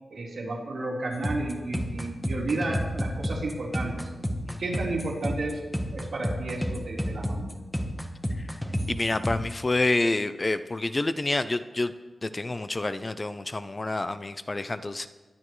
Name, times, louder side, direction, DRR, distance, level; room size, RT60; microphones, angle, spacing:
voice 1, 0.1-4.1 4.6-5.6 5.9-7.6, right 2 dB, 60° right, -4 dB, 3.9 m, -32 dB
sound 1, 1.1-9.5, equal, 5° left, 1.1 m, -30 dB
voice 2, 8.9-11.9 12.2-15.1, left 2 dB, 25° left, 11 dB, 0.4 m, -28 dB
22.5 x 11.5 x 3.2 m, 1.2 s
wide cardioid pair, 155°, 0 cm